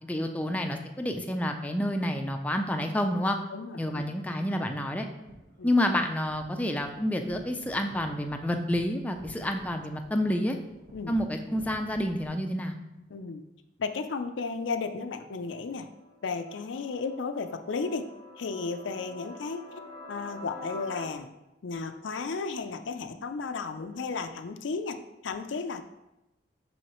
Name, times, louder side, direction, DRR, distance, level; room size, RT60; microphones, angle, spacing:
voice 1, 0.0-3.4 3.8-5.1 5.6-10.6 11.1-12.7, left 1 dB, 10° left, 4 dB, 0.4 m, -29 dB
voice 2, 3.5-4.1 5.6-5.7 10.9-11.1 13.0-13.4 13.8-15.9 16.2-18.0 18.4-19.6 20.1-21.3 21.6-25.0 25.2-25.8, left 4 dB, 85° left, 8 dB, 0.5 m, -34 dB
sound 1, 5.2-12.2, equal, 60° right, 1.2 m, -51 dB
sound 2, 15.5-21.0, left 1 dB, 85° right, 1.1 m, -46 dB
6.2 x 5.6 x 3.0 m, 0.92 s
head